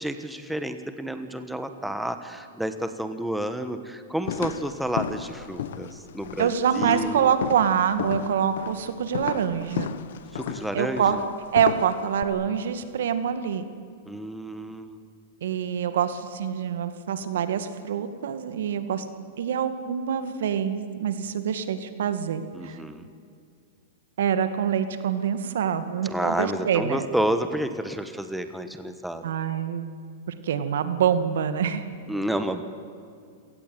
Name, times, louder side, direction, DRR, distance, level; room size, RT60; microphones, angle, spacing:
voice 1, 0.0-6.5 6.8-7.3 10.3-11.2 14.0-15.0 22.5-23.1 26.1-29.2 32.1-32.6, right 1 dB, ahead, 8 dB, 1.3 m, -30 dB
sound 1, 4.2-12.2, left 9 dB, 75° left, 1.4 m, -34 dB
voice 2, 6.4-9.9 10.7-11.2 11.5-13.6 15.4-19.1 19.4-22.8 24.2-27.0 29.2-29.9 30.4-31.8, right 8 dB, 80° right, 10 dB, 2.2 m, -25 dB
28.0 x 18.0 x 9.1 m, 2.3 s
supercardioid pair, 150°, 0 cm